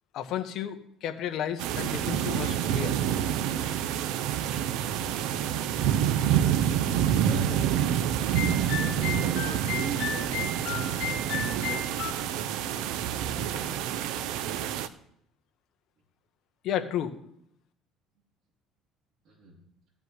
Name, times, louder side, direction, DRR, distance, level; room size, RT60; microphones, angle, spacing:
voice 1, 0.1-2.9 16.6-17.1, left 9 dB, 50° left, 6 dB, 1.4 m, -32 dB
sound 1, 1.6-14.9, right 10 dB, 70° right, 0.7 m, -27 dB
voice 2, 7.2-8.0 8.5-12.2 13.3-13.6 19.3-19.5, right 3 dB, 45° right, -3 dB, 3.8 m, -40 dB
sound 2, 8.3-12.1, left 9 dB, 75° left, 0.9 m, -34 dB
15.0 x 5.3 x 9.6 m, 0.72 s
cardioid pair, 145°, 0 cm